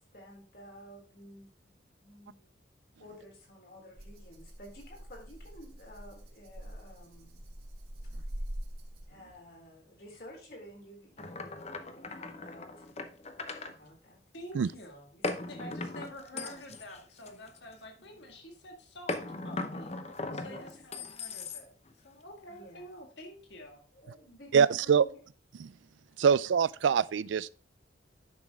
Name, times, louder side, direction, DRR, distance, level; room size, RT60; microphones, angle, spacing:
voice 1, 0.0-2.5 3.0-7.5 9.1-12.9 13.7-14.2 14.7-14.8 15.1-15.5 16.3-16.8 18.0-18.3 20.4-21.1 22.5-22.9 23.9-25.2 26.2-26.3, left 1 dB, 55° left, 3.6 m, -52 dB
Rattle (instrument), 4.0-9.3, equal, 55° right, 1.9 m, -43 dB
sound 1, 11.2-13.7 15.2-17.9 19.1-21.9, left 3 dB, 35° left, 0.7 m, -39 dB
voice 2, 14.3-15.1 15.5-19.2 19.4-19.9 20.3-21.8 22.0-23.8, equal, 70° left, 1.8 m, -48 dB
voice 3, 24.5-25.0 25.6-25.7 26.2-27.5, right 6 dB, 80° right, 0.4 m, -24 dB
10.5 x 6.2 x 3.6 m
head